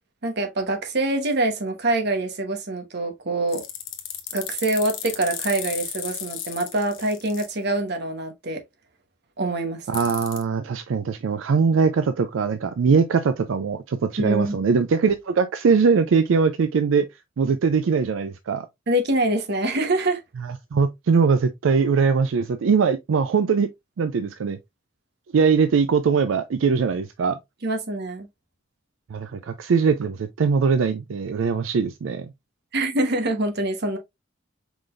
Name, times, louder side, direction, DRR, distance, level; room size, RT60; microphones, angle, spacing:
voice 1, 0.2-3.6 4.3-8.6 9.4-9.9 14.2-14.6 18.9-20.2 27.6-28.3 32.7-34.0, right 2 dB, 60° right, 1.1 m, -25 dB
sound 1, 3.5-7.5 9.9-10.4, left 10 dB, 70° left, 1.0 m, -34 dB
voice 2, 9.9-17.1 17.4-18.7 20.4-23.7 24.0-24.6 25.3-27.4 29.1-32.3, right 5 dB, 80° right, 0.4 m, -21 dB
5.0 x 3.8 x 2.5 m
head